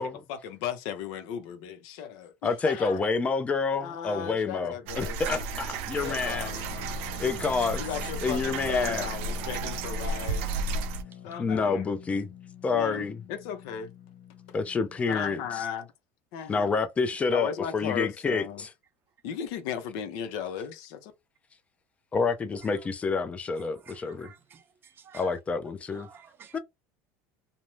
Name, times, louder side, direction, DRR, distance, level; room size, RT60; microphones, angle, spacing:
voice 1, 0.0-3.0 3.8-5.2 6.0-6.7 7.7-10.6 11.2-11.8 12.7-13.9 14.5-14.6 15.1-15.9 16.3-16.7 17.3-18.6 19.2-21.1, left 8 dB, 70° left, 0.7 m, -36 dB
voice 2, 2.4-6.5 7.2-7.8 8.2-9.1 11.4-12.3 12.6-13.2 14.5-15.6 16.5-18.7 22.1-24.3 25.1-26.1 26.5-26.6, left 4 dB, 20° left, 0.4 m, -28 dB
sound 1, 4.9-11.0, right 3 dB, 85° right, 0.6 m, -33 dB
Guitar, 5.9-15.1, left 9 dB, 85° left, 1.0 m, -46 dB
voice 3, 23.6-25.4 25.9-26.6, right 6 dB, 35° right, 0.5 m, -53 dB
2.6 x 2.1 x 3.1 m
cardioid pair, 135°, 7 cm